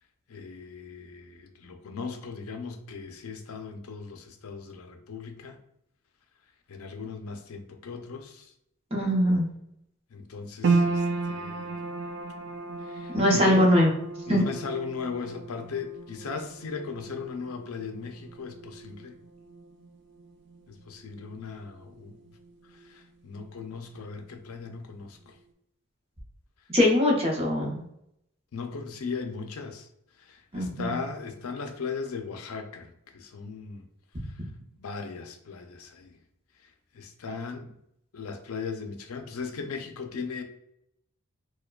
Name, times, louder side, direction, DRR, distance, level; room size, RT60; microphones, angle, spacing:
voice 1, 0.3-5.6 6.7-8.5 10.1-11.7 12.8-13.7 14.3-19.1 20.7-22.2 22.8-25.3 28.5-29.9 30.2-33.8 34.8-36.2 36.9-37.7 38.1-40.4, left 5 dB, 75° left, 6 dB, 0.5 m, -37 dB
voice 2, 8.9-9.5 13.1-13.9 14.3-14.4 26.7-27.8 30.5-31.0, left 1 dB, 25° right, -1 dB, 0.8 m, -22 dB
sound 1, 10.6-23.0 23.3-24.3 24.7-24.8, right 3 dB, 50° right, 0.3 m, -34 dB
4.6 x 2.1 x 2.3 m, 0.76 s
head